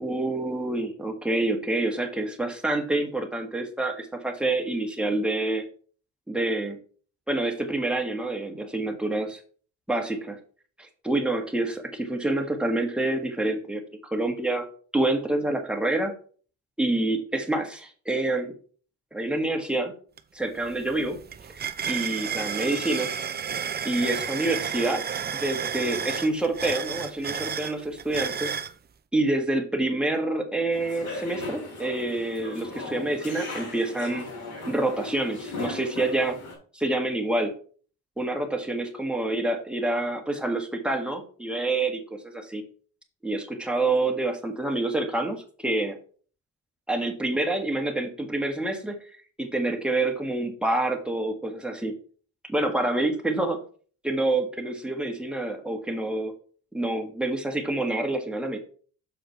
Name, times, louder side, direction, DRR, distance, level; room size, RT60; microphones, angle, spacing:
voice 1, 0.0-5.6 6.3-6.8 7.3-9.4 9.9-10.4 10.8-14.7 14.9-16.1 16.8-18.5 19.1-19.9 20.3-21.2 21.5-21.6 21.9-23.1 23.8-25.0 25.3-28.5 29.1-34.3 34.7-36.4 36.7-37.5 38.2-42.6 43.2-46.0 46.9-49.0 49.4-51.9 52.4-53.6 54.0-56.3 56.7-58.6, right 2 dB, 5° right, 2 dB, 1.6 m, -27 dB
sound 1, 20.2-20.3 20.6-28.7, right 7 dB, 35° right, 0.5 m, -32 dB
sound 2, 30.7-36.6, left 2 dB, 75° left, 3.9 m, -37 dB
6.8 x 5.0 x 4.6 m, 0.43 s
cardioid pair, 90°, 30 cm